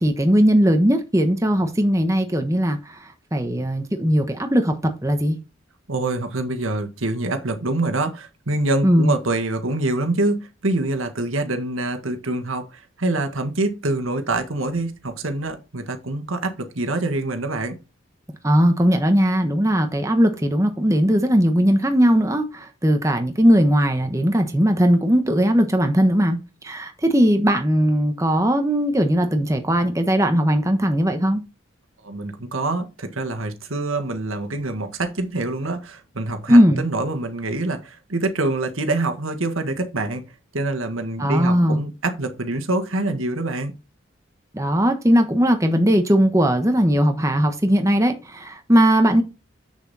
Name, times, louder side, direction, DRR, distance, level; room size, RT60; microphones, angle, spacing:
voice 1, 0.0-2.8 3.3-4.8 5.0-5.4 8.8-9.2 18.4-26.4 26.6-31.4 36.5-36.9 41.2-41.8 44.5-49.2, equal, 15° right, 1.1 m, -18 dB
voice 2, 5.9-17.8 32.0-40.2 40.5-43.7, right 2 dB, 80° right, 1.6 m, -25 dB
8.1 x 6.7 x 4.2 m
head